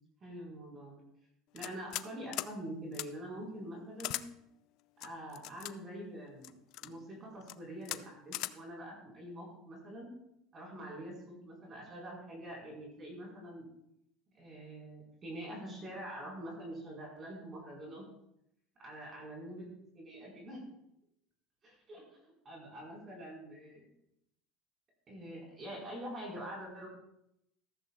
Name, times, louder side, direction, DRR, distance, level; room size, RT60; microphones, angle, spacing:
voice 1, 0.2-1.0 1.5-4.2 5.0-6.5 6.8-10.1 10.5-13.6 14.3-18.0 18.8-20.6 21.6-22.0 22.4-23.9 25.1-26.9, right 1 dB, 30° right, -2 dB, 4.7 m, -45 dB
sound 1, 1.6-2.1 2.3-2.5 2.9-3.1 4.0-4.2 5.0-5.7 6.4-6.9 7.4-7.6 7.8-8.0 8.3-8.5, left 16 dB, 60° left, 0.4 m, -39 dB
14.5 x 13.5 x 2.4 m, 0.79 s
supercardioid pair, 135°, 0 cm